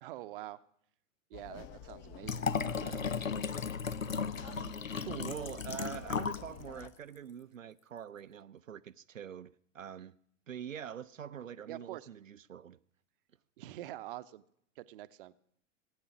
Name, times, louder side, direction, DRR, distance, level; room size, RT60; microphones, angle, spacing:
voice 1, 0.0-0.6 1.3-2.5 2.7-3.0 11.7-12.1 13.6-14.4 14.8-15.3, right 15 dB, 45° right, 0.7 m, -45 dB
sound 1, 1.3-6.9, left 9 dB, 35° left, 1.0 m, -50 dB
Liquid, 2.2-6.5 6.8-6.9, left 6 dB, 85° left, 0.6 m, -35 dB
voice 2, 4.4-10.2 10.5-12.8, right 9 dB, 80° right, 0.5 m, -45 dB
17.0 x 8.8 x 6.0 m
figure-of-eight pair, 100°, 39 cm